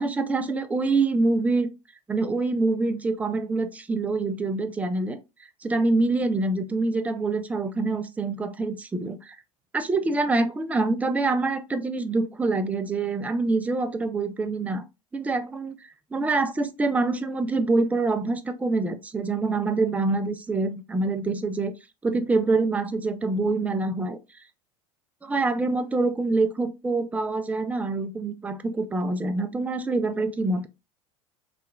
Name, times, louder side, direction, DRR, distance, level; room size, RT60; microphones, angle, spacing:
voice 1, 0.0-1.7 2.1-5.2 5.6-9.4 9.7-14.8 15.1-21.7 22.0-24.2 25.2-30.7, right 3 dB, 10° right, 0.3 m, -25 dB
2.9 x 2.3 x 2.2 m
hypercardioid pair, 80°, 18 cm